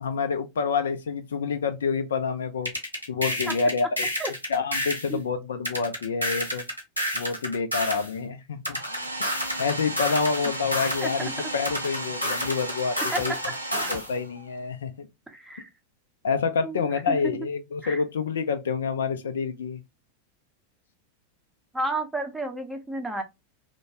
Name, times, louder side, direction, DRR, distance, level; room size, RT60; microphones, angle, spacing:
voice 1, 0.0-2.7 3.1-4.1 4.5-6.6 7.1-8.8 9.6-13.3 13.9-15.1 16.2-19.8, left 5 dB, 65° left, 0.4 m, -28 dB
sound 1, 2.7-5.1 5.7-8.1 8.7-11.1 11.6-14.1, equal, 90° left, 1.1 m, -29 dB
Domestic sounds home sounds, 8.7-14.6, right 1 dB, 85° right, 0.5 m, -35 dB
voice 2, 11.0-11.3 13.1-13.2 15.3-15.7 16.6-17.4 17.8-18.0 21.7-23.2, right 2 dB, 5° right, 0.6 m, -31 dB
2.9 x 2.1 x 2.7 m
figure-of-eight pair, 90°, 0 cm